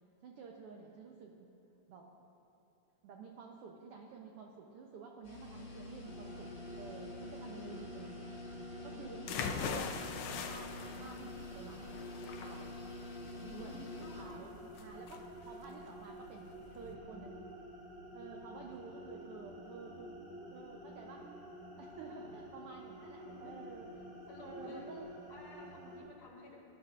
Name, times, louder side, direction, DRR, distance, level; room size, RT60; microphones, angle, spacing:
voice 1, 0.2-1.5 1.9-2.3 3.0-8.4 8.8-11.9 12.4-12.8 13.5-13.8 14.1-17.5 18.1-20.2 20.5-21.3 21.8-23.9 24.4-25.1 25.8-25.9, right 4 dB, 75° right, 1 dB, 1.3 m, -51 dB
sound 1, 5.2-14.2, left 2 dB, 40° left, 1.7 m, -48 dB
sound 2, 6.0-26.0, equal, 40° right, 1.6 m, -50 dB
voice 2, 7.4-7.9 8.9-9.3 13.3-14.7 18.9-19.0 22.1-22.4 23.2-23.5 24.3-24.9 25.3-26.6, left 2 dB, 55° left, -3 dB, 3.0 m, -53 dB
sound 3, 9.3-16.9, left 6 dB, 80° left, 1.4 m, -42 dB
19.5 x 11.5 x 2.5 m, 2.9 s
omnidirectional pair, 3.4 m